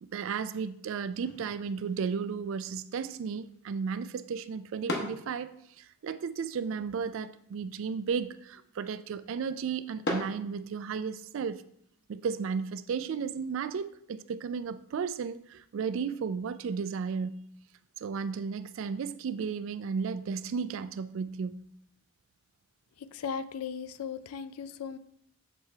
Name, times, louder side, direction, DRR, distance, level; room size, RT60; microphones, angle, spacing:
voice 1, 0.0-5.5 5.8-11.6 12.1-17.4 18.0-21.6, right 6 dB, 60° right, 0.3 m, -34 dB
sound 1, 1.1-11.2, left 1 dB, 50° left, 1.0 m, -43 dB
voice 2, 23.0-25.0, left 6 dB, 80° left, 0.4 m, -37 dB
7.5 x 3.4 x 4.3 m
head